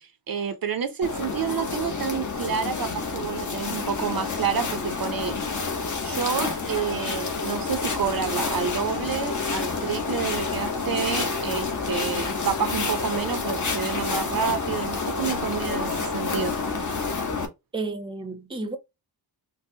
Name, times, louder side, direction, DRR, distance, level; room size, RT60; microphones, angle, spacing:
voice 1, 0.3-5.4 6.0-16.5, right 7 dB, 60° right, 0.5 m, -29 dB
sound 1, 1.0-17.5, left 4 dB, 50° left, 0.9 m, -29 dB
voice 2, 17.7-18.8, right 3 dB, 15° right, 0.5 m, -31 dB
4.0 x 2.1 x 2.6 m
wide cardioid pair, 125°, 40 cm